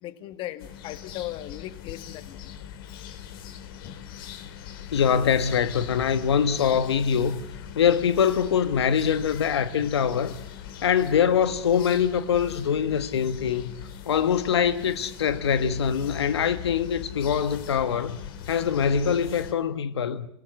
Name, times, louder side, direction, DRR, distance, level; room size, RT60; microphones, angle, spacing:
voice 1, 0.0-2.5 2.9-3.1 3.8-4.0, left 14 dB, 40° left, 1.7 m, -38 dB
sound 1, 0.6-19.5, left 9 dB, 60° left, 2.8 m, -41 dB
voice 2, 4.9-7.4 7.7-10.4 10.8-18.2 18.5-20.3, left 7 dB, 90° left, 1.3 m, -23 dB
27.5 x 17.5 x 8.1 m
hypercardioid pair, 135°, 13 cm